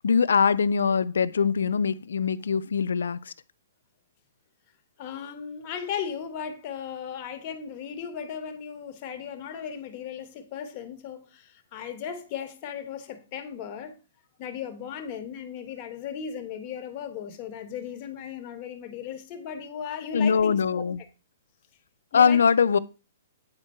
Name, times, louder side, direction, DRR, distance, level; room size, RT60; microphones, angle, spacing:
voice 1, 0.0-3.3 20.1-21.0 22.1-22.8, left 6 dB, 85° left, 0.4 m, -22 dB
voice 2, 5.0-14.0 14.4-20.9 22.1-22.4, left 8 dB, 35° left, 1.3 m, -36 dB
8.8 x 4.4 x 4.3 m
hypercardioid pair, 145°, 0 cm